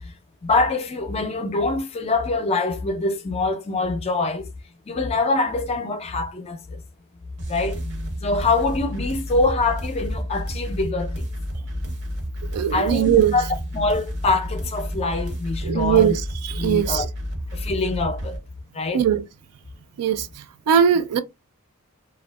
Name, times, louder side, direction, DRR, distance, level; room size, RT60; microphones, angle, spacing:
voice 1, 0.4-4.5 4.9-6.8 7.5-7.8 8.2-11.2 12.7-13.4 13.7-16.2 16.6-17.1 17.5-18.4 18.7-19.0, left 3 dB, 30° left, 0.4 m, -24 dB
sound 1, 7.4-18.4, equal, 55° right, 0.7 m, -31 dB
voice 2, 12.4-13.4 15.6-17.1 18.9-19.2 20.0-21.2, right 9 dB, 85° right, 0.3 m, -20 dB
2.6 x 2.3 x 2.2 m
head